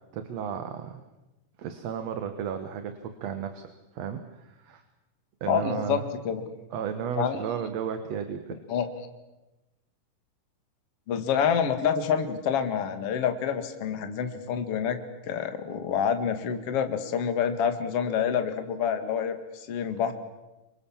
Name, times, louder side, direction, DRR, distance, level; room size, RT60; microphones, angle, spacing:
voice 1, 0.1-1.0 1.6-4.8 5.4-6.0 6.7-8.6, right 7 dB, 60° right, 8 dB, 2.3 m, -34 dB
voice 2, 5.5-6.4 7.1-7.4 8.7-8.9 11.1-15.0 15.3-20.1, left 7 dB, 50° left, 7 dB, 2.6 m, -27 dB
29.0 x 25.0 x 7.4 m, 1.0 s
omnidirectional pair, 3.9 m